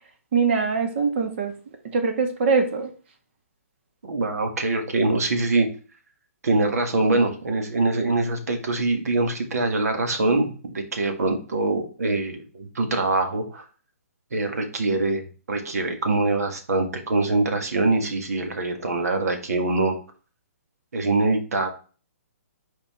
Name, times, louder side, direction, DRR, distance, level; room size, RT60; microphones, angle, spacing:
voice 1, 0.3-1.5 1.9-2.9, right 4 dB, 45° right, 5 dB, 1.6 m, -22 dB
voice 2, 4.0-5.7 6.4-13.6 14.3-20.0 20.9-21.7, right 2 dB, 75° right, 5 dB, 1.9 m, -24 dB
5.6 x 4.4 x 4.3 m, 0.37 s
hypercardioid pair, 160°, 8 cm